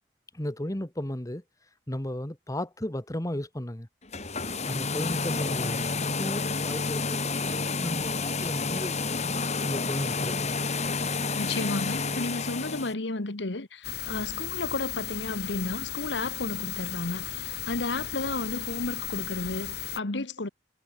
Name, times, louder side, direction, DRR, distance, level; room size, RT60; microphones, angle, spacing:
voice 1, 0.3-1.4 1.9-3.9 4.7-7.2 7.8-10.6, left 1 dB, 20° left, 1.5 m, -34 dB
sound 1, 4.0-12.9, left 4 dB, 40° left, 3.8 m, -30 dB
voice 2, 11.3-20.5, left 2 dB, 85° left, 1.6 m, -32 dB
sound 2, 13.8-20.0, left 10 dB, 65° left, 3.0 m, -35 dB
head